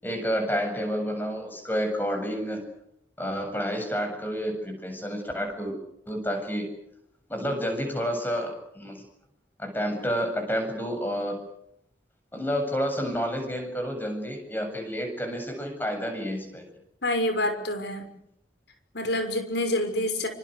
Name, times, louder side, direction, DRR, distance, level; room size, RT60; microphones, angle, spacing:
voice 1, 0.0-2.6 3.2-5.8 6.1-6.7 7.3-9.0 9.6-11.4 12.3-16.6, equal, 10° left, 5 dB, 7.6 m, -29 dB
voice 2, 17.0-18.1 18.9-20.3, left 1 dB, 65° left, 8 dB, 6.1 m, -27 dB
28.0 x 25.5 x 6.7 m, 0.74 s
head